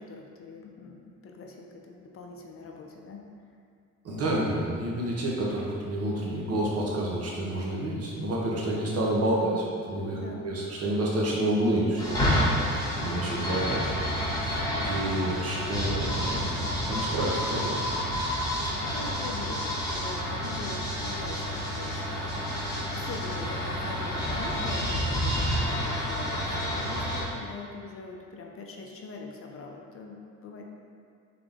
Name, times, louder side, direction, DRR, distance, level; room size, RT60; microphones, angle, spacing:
voice 1, 0.0-3.2 10.1-10.5 18.3-30.7, left 3 dB, 50° left, 1 dB, 0.6 m, -42 dB
voice 2, 4.0-13.9 14.4-14.5 14.8-17.8, right 1 dB, 55° right, -4 dB, 1.0 m, -29 dB
sound 1, 12.0-27.2, equal, 10° left, 1.3 m, -29 dB
3.8 x 3.5 x 3.5 m, 2.3 s
cardioid pair, 90°, 30 cm